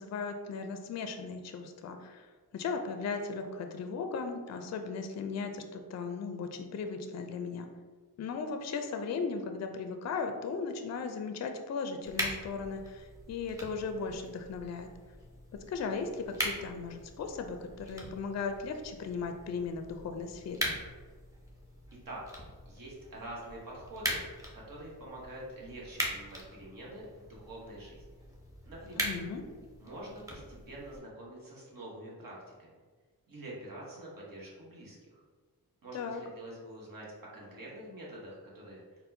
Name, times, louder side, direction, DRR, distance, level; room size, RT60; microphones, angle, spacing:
voice 1, 0.0-2.3 2.5-7.7 8.2-14.9 15.7-20.7 29.0-29.4 35.9-36.2, left 5 dB, 45° left, 6 dB, 0.4 m, -37 dB
sound 1, 12.0-31.0, equal, 10° right, 0.9 m, -41 dB
voice 2, 22.6-24.2 24.5-28.0 28.7-29.1 29.8-32.7 33.3-35.2 35.8-37.1 37.3-38.8, right 1 dB, 60° right, -4 dB, 1.2 m, -46 dB
4.1 x 2.2 x 2.7 m, 1.5 s
cardioid pair, 50°, 39 cm